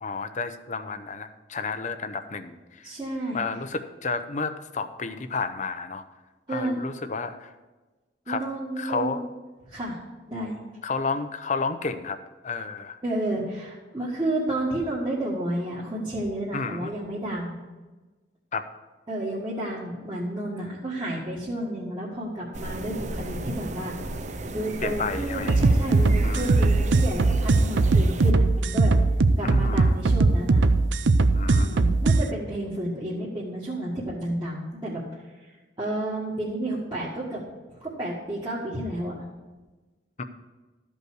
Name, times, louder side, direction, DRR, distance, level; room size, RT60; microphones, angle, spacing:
voice 1, 0.0-2.9 3.3-6.0 6.5-7.5 8.3-8.5 8.8-9.2 10.8-12.2 12.4-13.0 16.5-16.9 18.5-18.6 24.8-25.6 26.2-26.5 29.4-29.9 31.3-31.9 40.2-40.3, left 4 dB, 40° left, 10 dB, 0.7 m, -31 dB
voice 2, 2.8-3.4 6.5-6.8 8.3-9.2 9.7-10.0 10.3-10.5 13.0-17.6 19.1-23.9 24.2-29.0 29.4-30.7 31.5-35.0 35.8-37.4 37.8-39.2, right 1 dB, 25° right, -8 dB, 1.7 m, -31 dB
sound 1, 22.5-28.3, right 2 dB, 40° right, 0.6 m, -34 dB
sound 2, 25.5-32.2, right 3 dB, 85° right, 0.5 m, -20 dB
13.0 x 5.4 x 6.3 m, 1.2 s
head